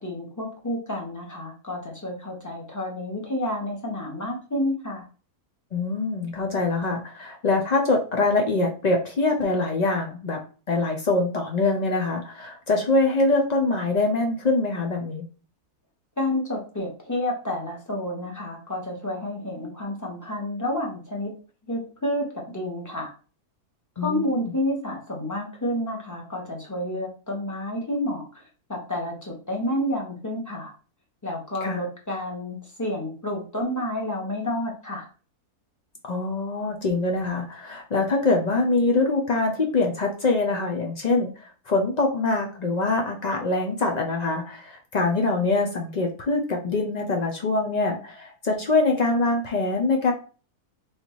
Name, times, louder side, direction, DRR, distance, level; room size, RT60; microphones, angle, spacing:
voice 1, 0.0-5.0 16.2-21.3 21.7-23.1 24.0-28.4 28.7-30.7 31.2-35.1, left 1 dB, 15° left, -1 dB, 1.0 m, -30 dB
voice 2, 5.7-10.4 10.7-15.2 24.0-24.5 31.6-31.8 36.0-50.1, left 3 dB, 80° left, 3 dB, 0.3 m, -24 dB
4.0 x 3.5 x 3.0 m, 0.37 s
omnidirectional pair, 1.6 m